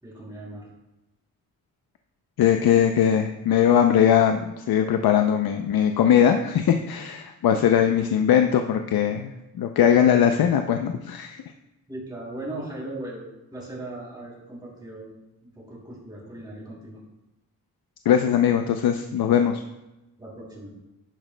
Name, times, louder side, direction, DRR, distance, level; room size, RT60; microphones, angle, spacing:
voice 1, 0.0-0.7 7.5-7.6 11.9-13.2 13.5-15.1 15.6-17.0 20.2-20.7, right 1 dB, 10° right, -5 dB, 2.9 m, -38 dB
voice 2, 2.4-9.3 9.6-11.4 18.1-19.6, left 9 dB, 80° left, 6 dB, 0.6 m, -20 dB
11.0 x 8.9 x 2.2 m, 0.98 s
wide cardioid pair, 135°, 36 cm